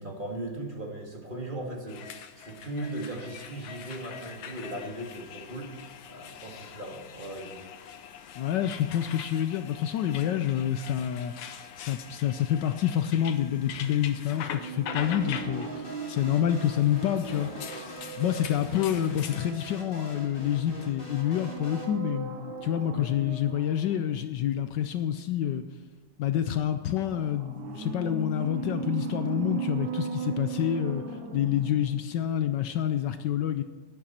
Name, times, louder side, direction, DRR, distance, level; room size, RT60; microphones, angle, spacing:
voice 1, 0.0-5.8 6.1-7.7 22.9-23.1, right 1 dB, 25° right, 0 dB, 2.0 m, -38 dB
sound 1, 1.9-19.4, left 8 dB, 90° left, 1.6 m, -43 dB
voice 2, 8.3-25.6 26.2-31.0 31.3-33.6, left 10 dB, 70° left, 9 dB, 1.2 m, -28 dB
sound 2, 14.3-20.0 21.1-24.1 26.9-32.1 32.4-32.5, right 5 dB, 75° right, 2.0 m, -38 dB
sound 3, 15.0-21.9, equal, 30° left, 2.2 m, -43 dB
13.0 x 10.0 x 4.3 m, 1.4 s
omnidirectional pair, 2.1 m